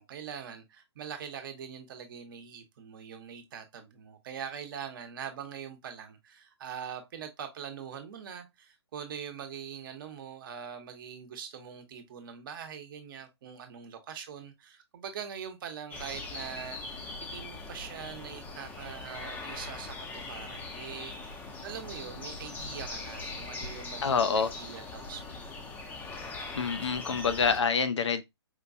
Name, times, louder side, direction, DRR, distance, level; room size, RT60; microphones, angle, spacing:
voice 1, 0.0-25.9, right 8 dB, 50° right, 0.9 m, -43 dB
sound 1, 15.9-27.6, left 3 dB, 10° left, 0.6 m, -41 dB
voice 2, 24.0-24.5 26.6-28.2, left 5 dB, 80° left, 0.6 m, -27 dB
4.5 x 2.2 x 2.6 m
hypercardioid pair, 140°, 15 cm